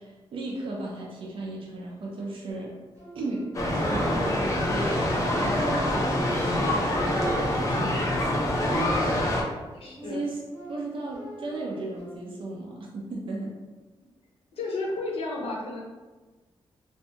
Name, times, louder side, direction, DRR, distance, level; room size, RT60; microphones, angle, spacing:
voice 1, 0.0-2.8 3.1-5.0 5.3-8.1 8.7-9.2 10.1-10.4 10.7-13.5, right 2 dB, 65° right, -2 dB, 0.4 m, -35 dB
sound 1, 2.5-4.8 5.2-9.2 9.7-12.2, right 2 dB, 30° right, 0.7 m, -44 dB
sound 2, 3.5-9.4, left 1 dB, 35° left, 0.4 m, -25 dB
voice 2, 9.8-10.2 14.5-15.8, left 2 dB, 90° left, -2 dB, 0.6 m, -32 dB
2.6 x 2.2 x 2.7 m, 1.2 s
wide cardioid pair, 170°, 10 cm